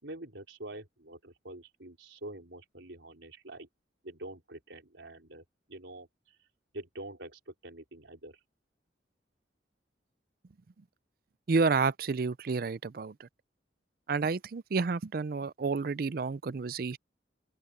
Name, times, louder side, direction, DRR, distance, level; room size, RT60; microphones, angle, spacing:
voice 1, 0.0-3.7 4.0-6.5 6.7-8.4, right 1 dB, 90° right, 4.3 m, -46 dB
voice 2, 11.5-13.1 14.1-17.0, right 4 dB, 55° right, 0.4 m, -30 dB
open air
head